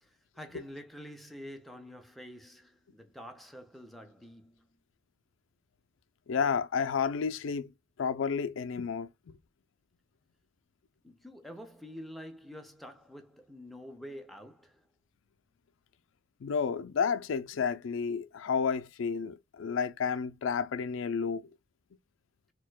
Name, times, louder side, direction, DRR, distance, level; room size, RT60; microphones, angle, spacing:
voice 1, 0.0-4.7 11.0-14.9, equal, ahead, 0.5 m, -47 dB
voice 2, 6.3-7.7 8.0-9.1 16.4-21.4, left 6 dB, 85° left, 0.4 m, -31 dB
4.2 x 2.2 x 2.2 m
head